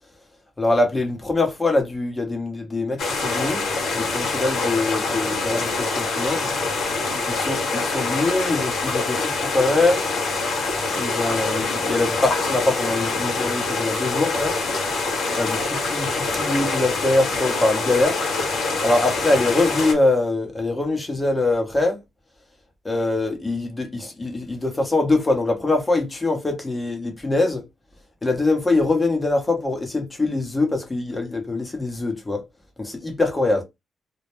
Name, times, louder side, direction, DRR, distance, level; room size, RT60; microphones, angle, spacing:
voice 1, 0.6-3.6 4.0-6.5 7.3-10.0 11.0-14.6 15.4-18.2 18.8-22.0 22.8-27.6 28.2-32.4 32.8-33.6, left 2 dB, 20° left, 0.8 m, -23 dB
sound 1, 3.0-19.9, left 3 dB, 75° left, 0.9 m, -25 dB
2.2 x 2.1 x 3.0 m
cardioid pair, 115°, 0 cm